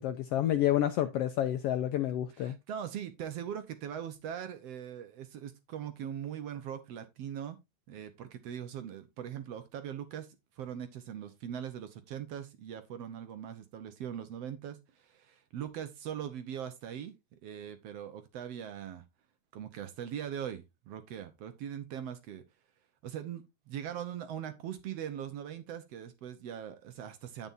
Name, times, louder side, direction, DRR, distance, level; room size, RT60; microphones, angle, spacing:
voice 1, 0.0-2.6, left 12 dB, 80° left, 1.4 m, -29 dB
voice 2, 2.4-7.6 7.9-10.3 10.6-19.0 19.5-22.4 23.0-27.5, right 9 dB, 65° right, 1.8 m, -41 dB
9.3 x 8.8 x 2.6 m
omnidirectional pair, 3.3 m